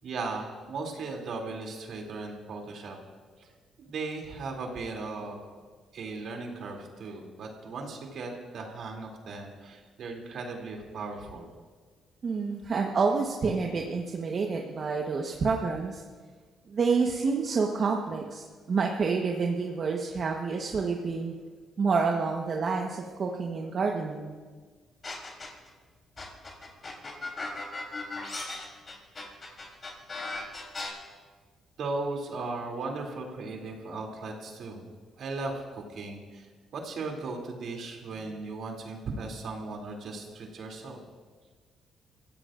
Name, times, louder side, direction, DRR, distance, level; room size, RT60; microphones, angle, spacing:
voice 1, 0.0-3.0 3.4-3.5 3.8-5.4 5.9-11.5 31.8-34.8 35.2-41.0, right 3 dB, 65° right, 1 dB, 2.9 m, -37 dB
voice 2, 12.2-16.0 16.7-21.3 21.8-24.3, right 4 dB, 50° right, 1 dB, 1.2 m, -28 dB
sound 1, 25.0-25.7 26.2-30.9, left 3 dB, 35° left, 3.5 m, -37 dB
25.5 x 15.5 x 2.6 m, 1.5 s
cardioid pair, 90°, 0 cm